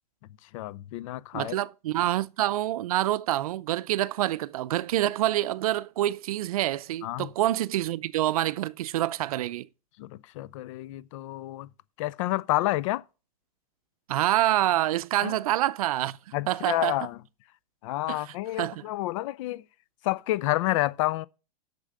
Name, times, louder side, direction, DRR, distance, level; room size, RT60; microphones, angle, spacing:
voice 1, 0.5-1.6 2.0-2.1 7.0-7.3 10.0-11.7 12.0-13.0 15.2-15.3 16.3-17.2 17.8-19.6 20.0-21.3, left 17 dB, 55° left, 0.6 m, -29 dB
voice 2, 1.3-9.7 14.1-16.2 16.5-17.0 18.1-18.2 18.6-18.8, right 14 dB, 65° right, 0.5 m, -27 dB
8.0 x 6.8 x 6.3 m
hypercardioid pair, 110°, 20 cm